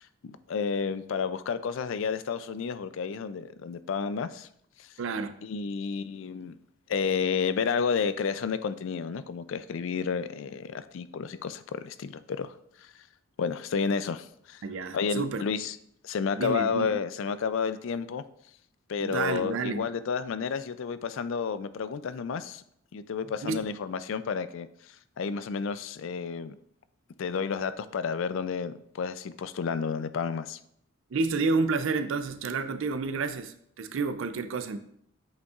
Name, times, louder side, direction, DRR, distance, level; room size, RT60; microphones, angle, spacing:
voice 1, 0.0-4.5 4.8-4.9 5.4-6.6 6.9-12.9 13.4-14.6 14.9-15.8 16.0-18.2 18.9-22.6 22.9-26.6 27.2-30.6, left 6 dB, 60° left, 14 dB, 0.3 m, -31 dB
voice 2, 5.0-5.3 14.6-15.5 16.3-16.9 19.0-19.9 23.4-23.6 31.1-34.8, right 4 dB, 60° right, 10 dB, 0.4 m, -30 dB
8.1 x 5.2 x 2.4 m, 0.71 s
head